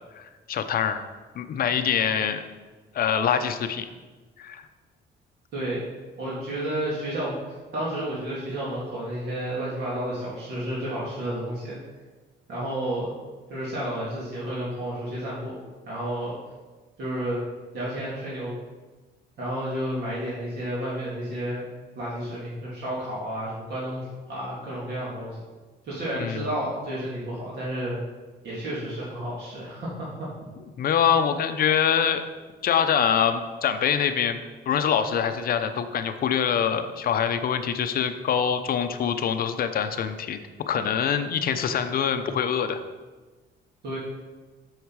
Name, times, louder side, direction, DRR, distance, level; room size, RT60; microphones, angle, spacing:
voice 1, 0.2-1.0 1.4-2.4 2.9-3.9 4.4-4.6 26.2-26.4 30.8-32.2 32.6-40.4 40.7-42.8, left 8 dB, 50° left, 9 dB, 0.6 m, -24 dB
voice 2, 5.5-5.9 6.2-7.4 7.7-11.8 12.5-13.1 13.5-15.5 15.9-16.4 17.0-17.4 17.7-18.5 19.4-21.6 22.0-25.4 25.8-28.0 28.4-30.1 43.8-44.0, right 1 dB, 60° right, -7 dB, 2.4 m, -31 dB
8.3 x 6.4 x 4.7 m, 1.3 s
cardioid pair, 155°, 19 cm